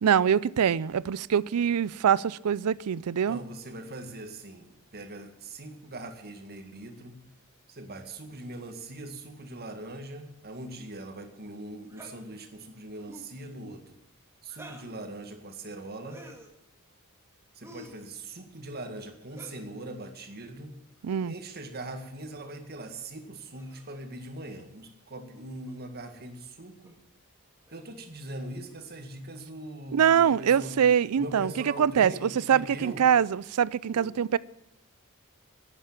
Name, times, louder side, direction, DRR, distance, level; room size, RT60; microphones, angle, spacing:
voice 1, 0.0-3.4 21.0-21.3 29.9-31.5 31.8-34.4, right 8 dB, 80° right, 0.4 m, -24 dB
voice 2, 3.3-7.2 7.7-14.0 14.4-16.2 17.5-20.7 21.2-27.0 27.7-30.8 31.2-33.1 33.9-34.1, right 1 dB, 45° right, 1.9 m, -41 dB
sound 1, 11.9-12.2 13.0-13.3 14.5-14.9 16.0-16.5 17.6-18.0 19.3-19.7 21.0-21.2 22.3-22.6 23.5-24.0 25.7-25.8 26.8-27.0 27.7-27.9 28.7-28.9 30.4-30.8, right 1 dB, 10° right, 1.8 m, -50 dB
11.5 x 9.0 x 9.0 m
head